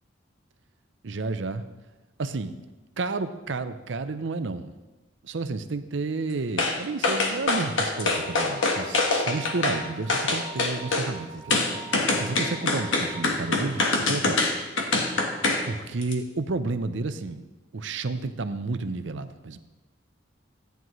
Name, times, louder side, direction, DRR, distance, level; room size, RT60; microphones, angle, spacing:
voice 1, 1.0-1.7 2.2-2.6 3.0-4.7 5.2-11.6 11.9-14.4 15.6-17.4 17.7-19.6, right 3 dB, 75° right, 11 dB, 0.6 m, -31 dB
sound 1, 6.6-6.8 7.0-9.8 10.1-11.1 11.5-15.7 16.0-16.1, left 3 dB, 85° left, 1.3 m, -24 dB
sound 2, 7.9-13.1, right 4 dB, 40° left, 1.8 m, -45 dB
13.5 x 9.2 x 3.1 m, 1.1 s
head